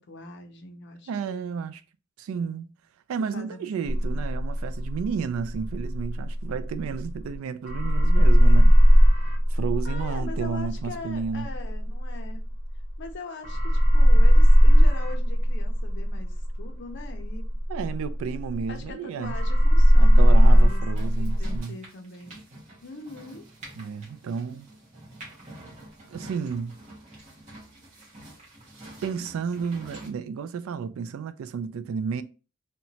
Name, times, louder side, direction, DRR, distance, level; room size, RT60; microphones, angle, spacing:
voice 1, 0.0-1.5 3.3-3.7 4.0-4.2 9.8-12.4 13.0-17.5 18.7-22.4 22.8-23.5, left 3 dB, 55° left, 0.5 m, -42 dB
voice 2, 1.1-1.8 2.2-2.7 3.1-8.8 9.5-11.5 17.7-19.4 20.0-21.8 23.8-24.7 26.1-26.8 29.0-32.2, right 6 dB, 75° right, 0.3 m, -32 dB
sound 1, 3.9-7.4 7.7-13.1 13.4-18.9 19.2-21.6, equal, 25° left, 0.8 m, -18 dB
sound 2, 20.9-30.1, right 1 dB, 35° right, 0.9 m, -47 dB
2.9 x 2.2 x 2.7 m
head